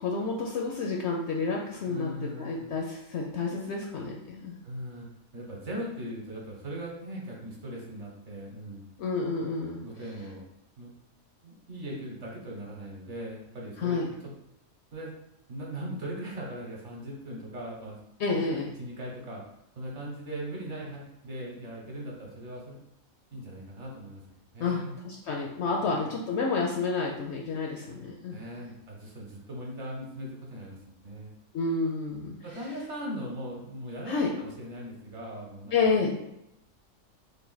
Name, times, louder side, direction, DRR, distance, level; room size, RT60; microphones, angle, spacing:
voice 1, 0.0-4.5 9.0-9.8 13.8-14.1 18.2-18.7 24.6-28.4 31.5-32.3 34.1-34.3 35.7-36.1, left 4 dB, 65° left, 0 dB, 0.7 m, -29 dB
voice 2, 1.9-2.7 4.6-5.1 5.3-8.8 9.8-10.5 10.8-10.9 11.4-14.3 14.9-15.1 15.5-18.0 18.3-19.4 19.7-22.8 23.3-24.2 24.5-25.0 25.8-26.3 28.3-30.8 31.0-31.3 32.4-35.9, equal, 55° right, -2 dB, 1.2 m, -39 dB
3.3 x 2.5 x 3.9 m, 0.82 s
omnidirectional pair, 1.5 m